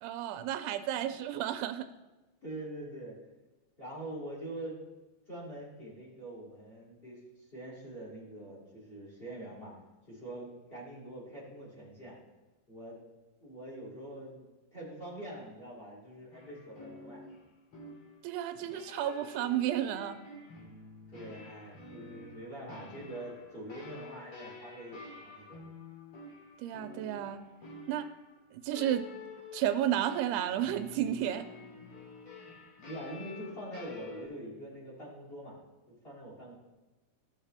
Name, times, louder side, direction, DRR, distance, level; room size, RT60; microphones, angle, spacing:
voice 1, 0.0-1.9 18.2-20.2 26.6-27.4 27.9-28.1 28.5-29.1 29.5-31.4, right 11 dB, 90° right, 9 dB, 2.6 m, -32 dB
voice 2, 2.4-3.2 3.8-4.8 5.3-7.2 7.5-9.7 10.1-12.2 12.7-13.0 13.4-17.2 20.6-20.8 21.1-25.6 32.8-35.6 35.9-36.5, right 1 dB, 15° left, -6 dB, 2.7 m, -44 dB
sound 1, 16.3-34.3, left 3 dB, 35° left, 3.0 m, -50 dB
16.0 x 6.4 x 3.4 m, 1.1 s
omnidirectional pair, 4.5 m